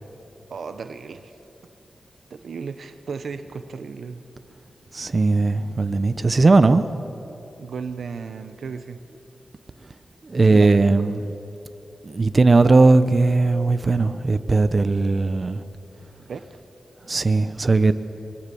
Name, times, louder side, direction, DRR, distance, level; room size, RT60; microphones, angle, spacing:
voice 1, 0.5-1.3 2.3-4.2 7.6-9.0 10.4-11.2 16.2-16.6, right 5 dB, 80° right, 10 dB, 0.9 m, -35 dB
voice 2, 4.9-6.8 10.2-11.2 12.0-15.6 17.1-17.9, right 3 dB, 50° right, 11 dB, 0.9 m, -18 dB
23.5 x 22.0 x 7.1 m, 2.9 s
cardioid pair, 50°, 0 cm